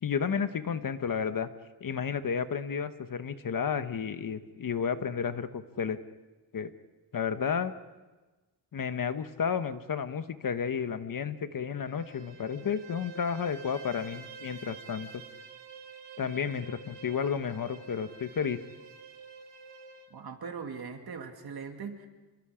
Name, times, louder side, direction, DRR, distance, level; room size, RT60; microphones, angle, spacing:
voice 1, 0.0-1.5 1.8-6.0 6.5-6.7 7.1-7.7 8.7-15.2 16.2-18.6, left 7 dB, 50° left, 11 dB, 1.1 m, -32 dB
Bowed string instrument, 11.8-20.1, right 4 dB, 80° right, 2.2 m, -48 dB
voice 2, 20.1-22.1, right 5 dB, 60° right, 4 dB, 2.5 m, -40 dB
29.0 x 21.5 x 5.0 m, 1.2 s
wide cardioid pair, 115°, 41 cm